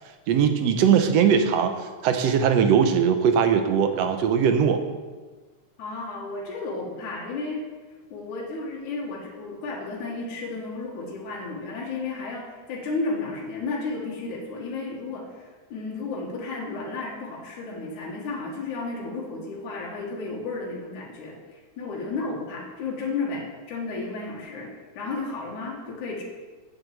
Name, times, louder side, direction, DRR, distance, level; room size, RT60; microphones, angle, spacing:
voice 1, 0.3-4.8, right 7 dB, 70° right, 7 dB, 1.7 m, -20 dB
voice 2, 5.8-7.6 8.1-26.2, left 3 dB, 85° left, -2 dB, 3.0 m, -33 dB
8.5 x 7.5 x 7.4 m, 1.3 s
omnidirectional pair, 3.4 m